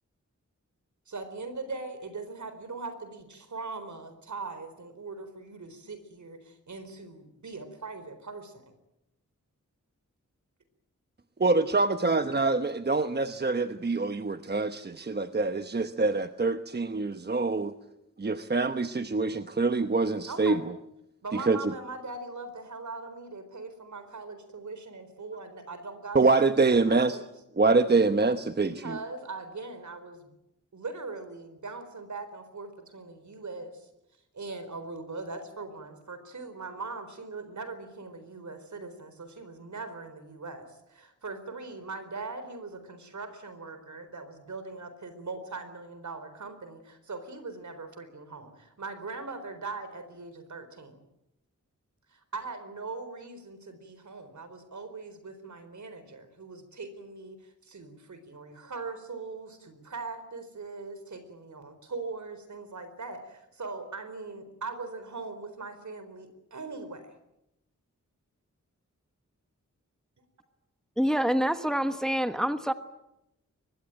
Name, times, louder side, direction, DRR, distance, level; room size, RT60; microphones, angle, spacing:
voice 1, 1.1-8.6 20.3-20.6 21.2-27.3 28.6-30.3 30.7-33.9 34.3-51.0 52.1-67.1, right 3 dB, 70° right, 10 dB, 4.3 m, -41 dB
voice 2, 11.4-17.7 18.2-20.7 21.3-21.7 26.1-27.2 27.6-29.0, right 3 dB, 35° right, 9 dB, 1.0 m, -25 dB
voice 3, 71.0-72.7, equal, ahead, 9 dB, 1.2 m, -26 dB
24.0 x 20.5 x 9.1 m, 0.88 s
wide cardioid pair, 115°, 31 cm